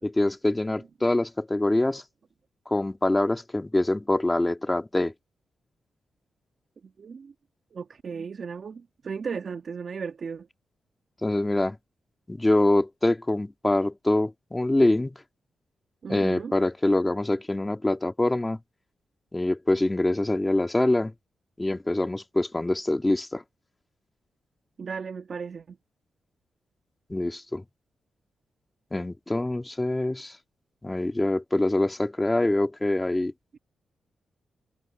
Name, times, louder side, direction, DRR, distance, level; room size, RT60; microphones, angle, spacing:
voice 1, 0.0-2.0 2.7-5.1 11.2-11.8 12.3-15.2 16.1-18.6 19.3-21.1 21.6-23.4 27.1-27.6 28.9-30.3 30.8-33.3, left 2 dB, 15° left, 2.2 m, -25 dB
voice 2, 6.8-7.3 7.7-10.5 16.0-16.5 24.8-25.8 33.5-33.6, right 5 dB, 55° right, 2.5 m, -36 dB
cardioid pair, 90°, 0 cm